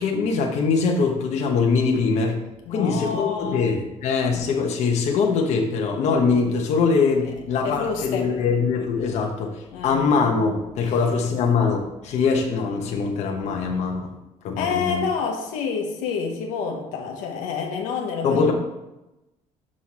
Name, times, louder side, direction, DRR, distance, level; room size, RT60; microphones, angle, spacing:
voice 1, 0.0-2.4 2.7-9.5 9.8-14.1 14.4-15.0 18.2-18.5, left 5 dB, 60° left, 1 dB, 1.1 m, -22 dB
voice 2, 2.7-3.7 7.6-8.3 9.7-10.1 10.8-10.9 14.6-18.5, left 6 dB, 85° left, 1 dB, 1.2 m, -28 dB
6.4 x 5.7 x 4.2 m, 0.96 s
cardioid pair, 125°, 13 cm